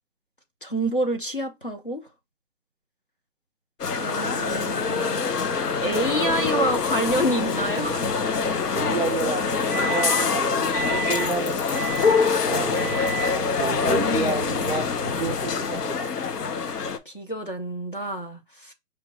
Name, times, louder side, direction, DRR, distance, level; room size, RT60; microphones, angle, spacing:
voice 1, 0.6-2.0 4.0-5.2 5.8-8.1 17.1-18.7, equal, 35° left, 0.5 m, -27 dB
sound 1, 3.8-17.0, left 5 dB, 75° left, 1.0 m, -25 dB
voice 2, 5.9-6.9 8.7-11.7 12.4-16.1, right 4 dB, 45° right, 0.4 m, -31 dB
Microwave oven, 7.8-10.4 10.7-11.3 11.7-12.3 12.8-13.4, right 6 dB, 15° left, 1.0 m, -34 dB
4.9 x 3.1 x 2.8 m
hypercardioid pair, 175°, 47 cm